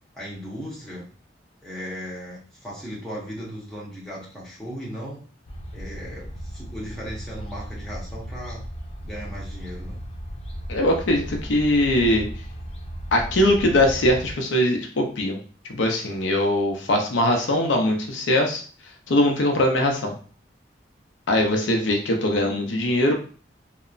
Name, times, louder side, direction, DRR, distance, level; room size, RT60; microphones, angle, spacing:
voice 1, 0.1-1.0 1.6-5.3 5.7-8.6 9.0-10.0, equal, 5° left, -6 dB, 0.9 m, -37 dB
sound 1, 5.5-14.3, equal, 35° left, 0.4 m, -36 dB
voice 2, 10.7-12.3 13.1-15.4 15.7-18.6 19.1-20.2 21.3-23.1, left 1 dB, 90° left, 2 dB, 0.5 m, -21 dB
2.8 x 2.1 x 2.4 m, 0.41 s
head